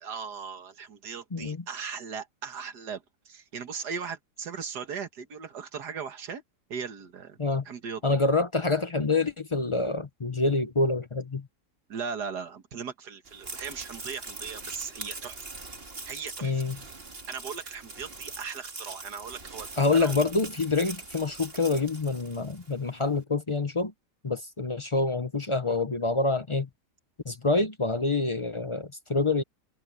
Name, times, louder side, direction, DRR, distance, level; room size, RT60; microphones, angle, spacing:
voice 1, 0.0-6.4 6.7-7.4 7.7-8.0 11.9-15.5 16.1-16.6 17.3-20.2, right 6 dB, 70° right, 2.1 m, -38 dB
voice 2, 8.0-11.5 16.4-16.8 19.8-23.9 24.2-26.7 27.3-29.4, left 3 dB, 40° left, 0.4 m, -26 dB
sound 1, 13.3-22.8, right 3 dB, 35° right, 2.5 m, -42 dB
omnidirectional pair, 1.8 m